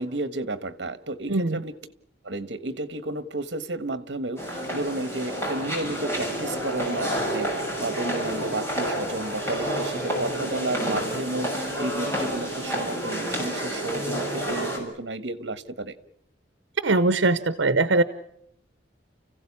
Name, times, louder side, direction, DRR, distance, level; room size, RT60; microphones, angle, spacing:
voice 1, 0.0-1.7 2.2-16.0, right 2 dB, 65° right, 1.4 m, -32 dB
voice 2, 1.3-1.6 16.8-18.0, right 2 dB, 85° right, 0.9 m, -21 dB
sound 1, 4.4-14.8, equal, 15° left, 6.3 m, -29 dB
30.0 x 16.0 x 8.5 m
head